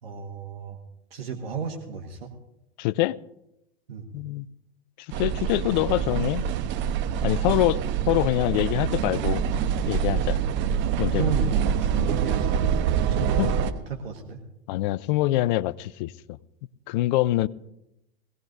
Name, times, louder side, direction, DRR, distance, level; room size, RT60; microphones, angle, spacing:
voice 1, 0.0-0.8 1.1-2.3 3.9-4.1 11.1-14.4, right 6 dB, 80° right, 2 dB, 1.7 m, -33 dB
voice 2, 2.8-3.2 4.1-4.5 5.2-6.5 7.2-9.4 9.9-10.4 11.0-11.4 13.4-13.5 14.7-16.4 16.9-17.5, left 16 dB, 50° left, 19 dB, 0.5 m, -25 dB
sound 1, 5.1-13.7, right 8 dB, 40° right, 1.0 m, -25 dB
21.5 x 17.5 x 2.7 m, 0.88 s
hypercardioid pair, 100°, 29 cm